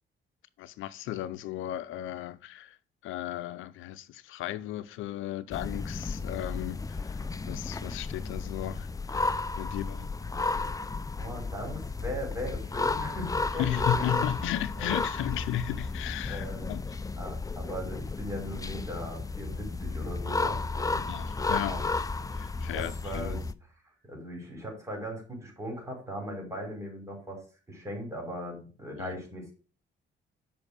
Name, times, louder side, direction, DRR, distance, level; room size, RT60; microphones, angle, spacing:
voice 1, 0.6-2.8 3.0-10.1 13.6-16.8 21.1-21.8 22.4-23.4 29.0-29.2, left 12 dB, 90° left, 0.6 m, -35 dB
sound 1, 5.5-23.5, left 3 dB, 15° left, 0.6 m, -33 dB
voice 2, 11.1-14.1 14.8-15.0 16.3-16.7 17.2-21.0 21.6-21.8 22.7-23.5 24.0-27.4 27.7-29.5, equal, 15° right, 5.4 m, -39 dB
7.2 x 5.5 x 6.5 m
cardioid pair, 90°, 20 cm